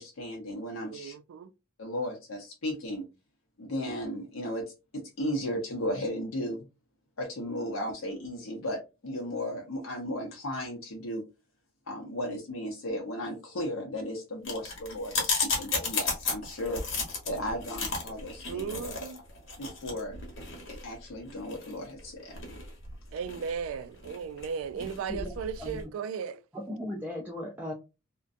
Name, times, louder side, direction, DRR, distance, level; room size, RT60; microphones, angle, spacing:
voice 1, 0.0-1.1 1.8-3.0 3.6-6.6 7.2-11.2 11.9-16.8 17.3-18.7 19.6-20.2 20.8-22.3, equal, 85° left, 0.7 m, -35 dB
voice 2, 0.9-1.5 18.5-19.2 23.1-26.4, right 6 dB, 75° right, 0.3 m, -36 dB
sound 1, 14.4-25.8, left 4 dB, 65° left, 0.9 m, -34 dB
voice 3, 24.7-25.3 25.6-25.9 26.5-27.7, left 1 dB, 10° right, 0.4 m, -37 dB
2.5 x 2.2 x 2.4 m
head